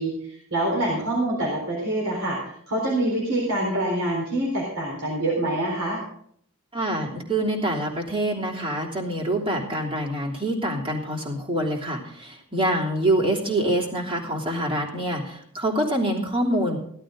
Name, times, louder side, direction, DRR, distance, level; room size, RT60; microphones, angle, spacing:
voice 1, 0.0-6.0, right 1 dB, 85° right, -2 dB, 4.0 m, -26 dB
voice 2, 6.7-16.8, right 1 dB, 25° right, -2 dB, 3.1 m, -25 dB
16.5 x 12.5 x 3.8 m, 0.65 s
head